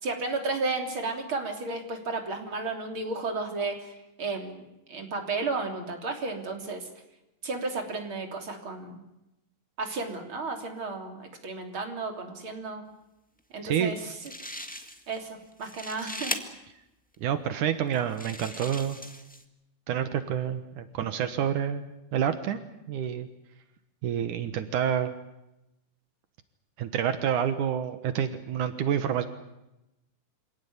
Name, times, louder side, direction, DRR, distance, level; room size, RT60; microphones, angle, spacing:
voice 1, 0.0-6.9 7.4-9.0 9.8-12.8 13.5-14.1 15.1-16.3, right 3 dB, 40° right, 4 dB, 4.0 m, -33 dB
sound 1, 13.9-14.0 14.2-15.2 15.5-16.4 17.1-17.2 17.9-19.4, left 1 dB, 5° left, 1.0 m, -38 dB
voice 2, 17.2-19.0 19.9-21.8 22.1-22.6 22.9-23.3 24.0-25.1 26.8-29.3, right 9 dB, 75° right, 10 dB, 2.7 m, -28 dB
26.0 x 18.0 x 9.5 m, 0.91 s
omnidirectional pair, 3.7 m